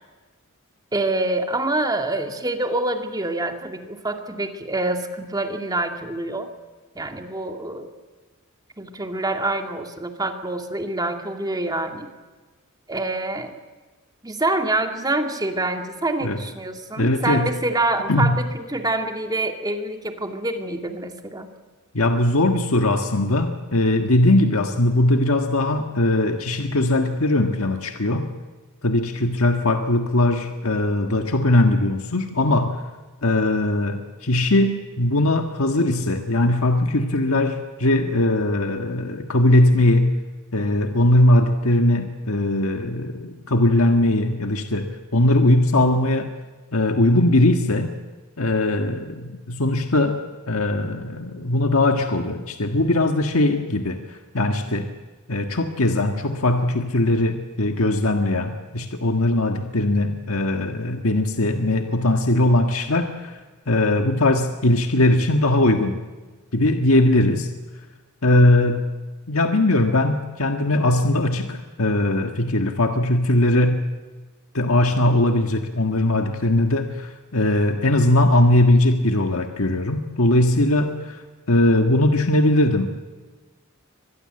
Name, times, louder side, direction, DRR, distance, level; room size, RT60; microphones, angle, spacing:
voice 1, 0.9-6.5 7.0-7.9 8.8-12.1 12.9-13.5 14.2-21.5, right 2 dB, 20° right, 5 dB, 2.2 m, -26 dB
voice 2, 17.0-17.5 18.1-18.4 21.9-28.3 28.8-32.8 33.2-40.2 40.5-46.3 46.7-47.9 48.4-50.2 50.5-54.9 55.3-63.4 63.7-66.0 66.5-67.5 68.2-68.9 69.3-73.8 74.5-81.2 81.5-83.0, left 1 dB, 75° left, 5 dB, 1.6 m, -20 dB
24.5 x 20.0 x 7.8 m, 1.3 s
head